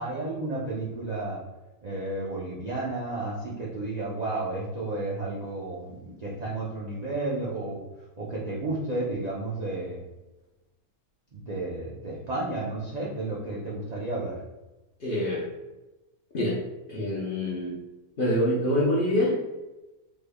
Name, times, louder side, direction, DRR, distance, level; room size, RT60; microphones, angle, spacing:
voice 1, 0.0-1.4 1.8-7.8 8.2-10.0 11.3-14.4, right 2 dB, 70° right, -5 dB, 0.4 m, -32 dB
voice 2, 15.0-15.5 16.3-16.6 16.9-17.8 18.2-19.4, left 1 dB, 50° left, -6 dB, 0.6 m, -25 dB
3.5 x 3.2 x 2.2 m, 1.1 s
omnidirectional pair, 1.6 m